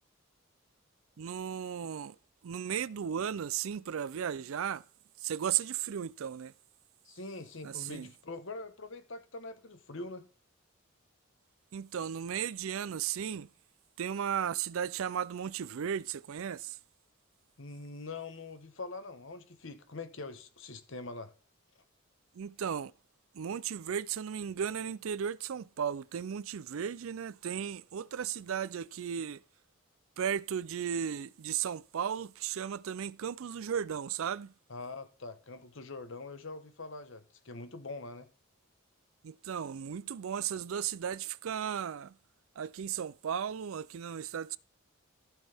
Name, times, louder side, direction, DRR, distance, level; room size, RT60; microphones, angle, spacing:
voice 1, 1.2-2.2 2.4-4.8 5.2-6.5 7.6-8.1 11.7-13.5 14.0-16.8 22.3-22.9 23.3-29.4 30.2-34.5 39.2-42.2 42.6-44.6, right 8 dB, 70° right, 0.4 m, -35 dB
voice 2, 7.0-10.3 17.6-21.3 34.7-38.3, left 3 dB, 60° left, 1.1 m, -43 dB
14.5 x 6.2 x 3.5 m
head